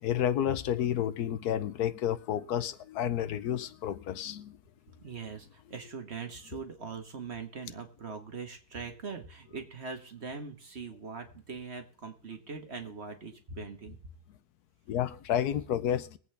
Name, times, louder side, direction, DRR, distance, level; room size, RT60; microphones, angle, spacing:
voice 1, 0.0-4.6 14.9-16.2, left 10 dB, 80° left, 1.2 m, -30 dB
voice 2, 5.0-14.0, right 5 dB, 45° right, 1.6 m, -41 dB
21.5 x 8.3 x 3.4 m
omnidirectional pair, 1.6 m